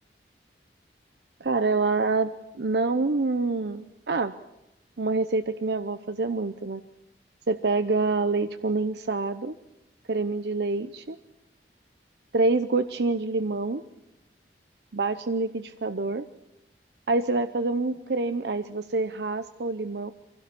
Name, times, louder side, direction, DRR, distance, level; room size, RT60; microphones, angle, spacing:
voice 1, 1.4-4.3 5.0-6.8 7.5-9.6 10.1-11.2 12.3-13.8 14.9-16.2 17.1-20.1, right 3 dB, 75° right, 9 dB, 0.7 m, -26 dB
24.0 x 16.5 x 8.4 m, 0.95 s
head